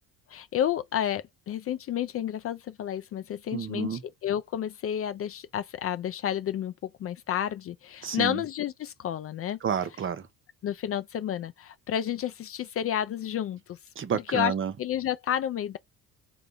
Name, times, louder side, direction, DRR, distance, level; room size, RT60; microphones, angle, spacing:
voice 1, 0.3-9.6 10.6-13.8 14.3-14.5 14.8-15.8, left 10 dB, 40° left, 0.4 m, -31 dB
voice 2, 3.5-4.0 8.0-8.4 9.6-10.3 14.0-14.7, right 7 dB, 35° right, 0.7 m, -30 dB
3.3 x 2.4 x 3.8 m
supercardioid pair, 90°, 35 cm